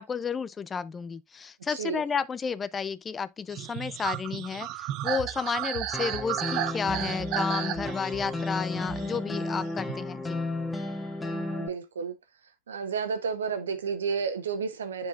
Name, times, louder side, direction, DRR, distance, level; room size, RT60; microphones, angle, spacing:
voice 1, 0.0-10.4, left 6 dB, 25° left, 0.4 m, -32 dB
voice 2, 1.7-2.0 11.3-12.1 12.7-15.1, right 6 dB, 85° right, 1.0 m, -31 dB
sound 1, 3.5-10.0, right 13 dB, 50° right, 0.5 m, -34 dB
sound 2, 5.9-11.7, left 2 dB, 10° left, 1.0 m, -33 dB
10.0 x 4.6 x 2.4 m
hypercardioid pair, 90°, 0 cm